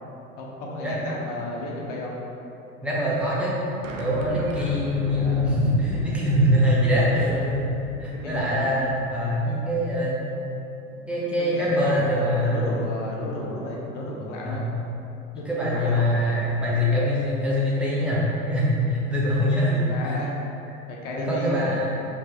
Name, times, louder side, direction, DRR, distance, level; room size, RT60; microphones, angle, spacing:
voice 1, 0.4-2.2 5.0-5.6 6.9-7.5 8.1-8.7 10.9-14.6 15.4-16.1 19.6-20.4 20.9-21.7, left 1 dB, 55° left, -3 dB, 1.0 m, -33 dB
voice 2, 2.8-3.6 4.0-7.7 8.0-10.3 11.1-12.8 14.4-14.7 15.3-18.2 18.5-19.8 20.0-20.2 21.1-21.9, equal, 5° right, -8 dB, 0.9 m, -23 dB
sound 1, 3.8-9.1, right 2 dB, 60° right, 0.7 m, -36 dB
4.5 x 3.3 x 2.9 m, 2.9 s
figure-of-eight pair, 80°, 43 cm